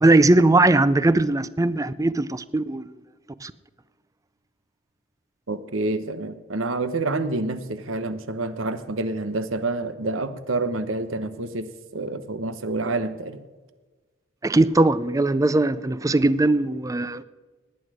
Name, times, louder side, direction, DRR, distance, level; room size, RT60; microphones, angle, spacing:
voice 1, 0.0-2.8 3.4-3.5 14.4-17.2, right 2 dB, 15° right, 0.5 m, -19 dB
voice 2, 5.5-11.7 11.9-13.4, right 2 dB, 80° right, 1.1 m, -28 dB
19.0 x 9.7 x 5.0 m
head